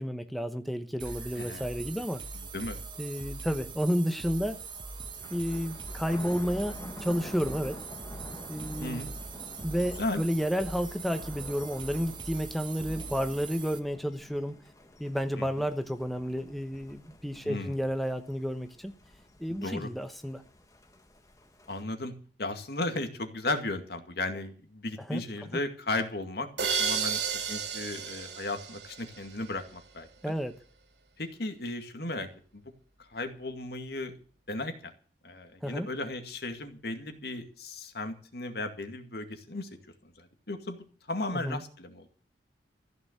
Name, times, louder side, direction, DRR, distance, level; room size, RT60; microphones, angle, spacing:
voice 1, 0.0-2.2 3.0-4.6 5.3-7.8 8.5-9.0 9.6-14.6 15.0-19.0 19.4-20.4 25.1-25.2 30.2-30.6 35.6-35.9 41.3-41.6, equal, ahead, 7 dB, 0.9 m, -31 dB
sound 1, 1.0-13.8, right 4 dB, 25° right, 1.3 m, -42 dB
voice 2, 1.4-1.7 2.5-2.8 8.8-9.1 10.0-10.2 15.4-15.5 17.4-17.8 19.6-19.9 21.7-22.1 22.4-30.3 31.2-32.3 32.5-32.6 33.1-34.2 34.5-34.9 35.2-39.7 40.2-40.8 41.1-42.1, left 2 dB, 60° left, 7 dB, 2.2 m, -35 dB
Thunder, 4.1-21.8, left 1 dB, 20° left, 1.6 m, -48 dB
sound 2, 26.6-29.4, right 6 dB, 70° right, 2.7 m, -32 dB
15.0 x 6.9 x 9.4 m, 0.42 s
head